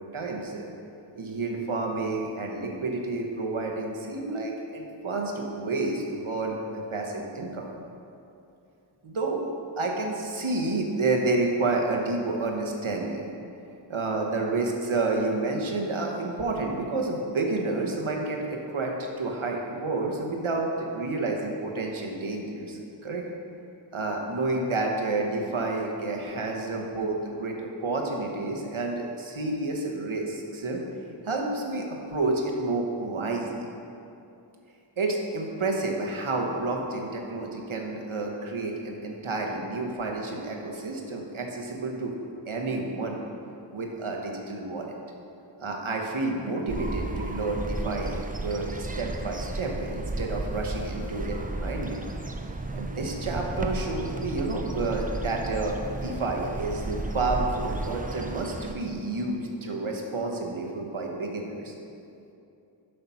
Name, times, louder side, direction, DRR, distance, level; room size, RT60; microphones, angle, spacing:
voice 1, 0.1-0.7 1.2-7.7 9.0-13.2 13.9-23.2 23.9-30.8 31.2-33.7 35.0-42.2 42.4-43.2 43.7-45.0 45.6-52.0 52.7-61.7, right 2 dB, 80° right, 1 dB, 1.2 m, -30 dB
sound 1, 46.7-58.7, right 2 dB, 20° right, 0.5 m, -33 dB
7.7 x 5.7 x 5.7 m, 2.7 s
wide cardioid pair, 45°, 48 cm